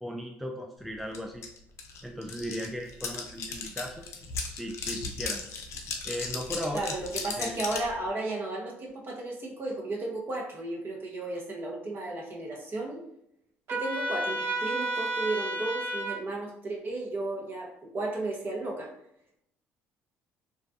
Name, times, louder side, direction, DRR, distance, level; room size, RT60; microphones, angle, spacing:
voice 1, 0.0-1.4 2.0-4.0 4.5-5.4 6.0-7.0 7.4-7.6, equal, ahead, 1 dB, 0.3 m, -37 dB
sound 1, 1.1-1.2 1.4-7.9, left 4 dB, 60° left, 0.5 m, -36 dB
voice 2, 6.7-13.0 13.7-18.9, right 2 dB, 40° right, -1 dB, 0.8 m, -34 dB
Trumpet, 13.7-16.2, right 2 dB, 70° right, 1.0 m, -31 dB
2.4 x 2.2 x 2.6 m, 0.76 s
supercardioid pair, 75°, 5 cm